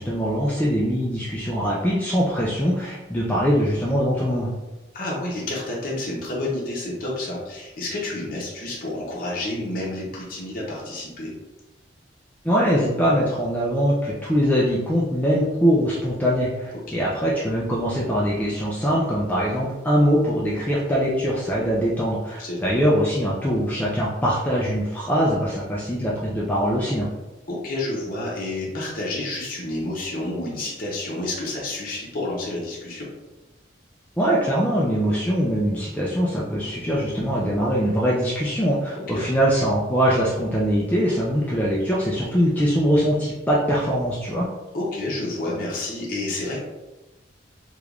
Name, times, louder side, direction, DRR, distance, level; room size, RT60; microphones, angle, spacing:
voice 1, 0.0-4.5 12.4-27.1 34.2-44.5, equal, 10° left, -6 dB, 0.3 m, -22 dB
voice 2, 4.9-11.3 22.4-22.7 27.5-33.1 39.1-39.2 44.7-46.6, left 2 dB, 45° left, -4 dB, 0.7 m, -29 dB
3.3 x 2.9 x 2.4 m, 1.1 s
head